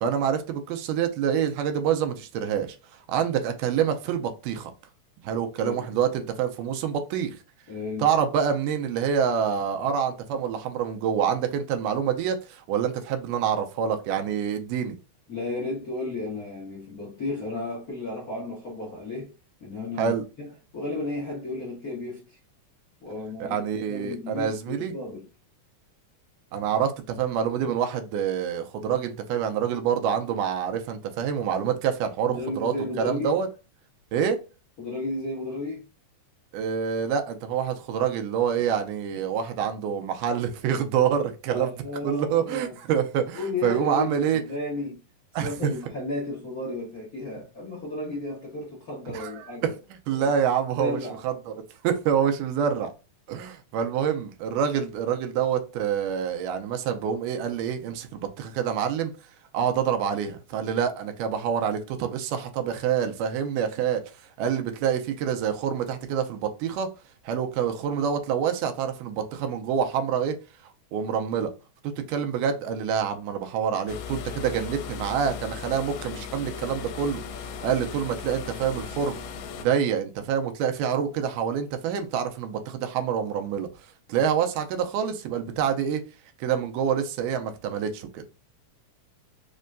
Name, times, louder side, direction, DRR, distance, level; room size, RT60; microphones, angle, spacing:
voice 1, 0.0-4.7 5.2-7.4 8.0-15.0 20.0-20.3 23.4-24.9 26.5-33.5 34.1-34.4 36.5-41.7 42.0-44.4 45.4-45.7 49.1-49.7 50.1-51.5 51.8-52.9 53.3-59.1 59.5-64.0 64.4-66.9 67.3-70.4 70.9-71.5 71.8-79.2 79.6-83.7 84.1-86.0 86.4-88.2, right 8 dB, 85° right, 2.2 m, -26 dB
voice 2, 7.7-8.1 15.3-19.3 19.6-20.5 20.7-22.4 23.0-25.3 32.3-33.4 34.8-35.8 41.5-42.7 43.3-45.0 45.4-49.7 50.1-50.3 50.7-51.2, left 2 dB, 70° left, 0.8 m, -33 dB
sound 1, 73.9-79.7, left 7 dB, 85° left, 2.2 m, -37 dB
5.3 x 2.2 x 2.5 m
omnidirectional pair, 3.8 m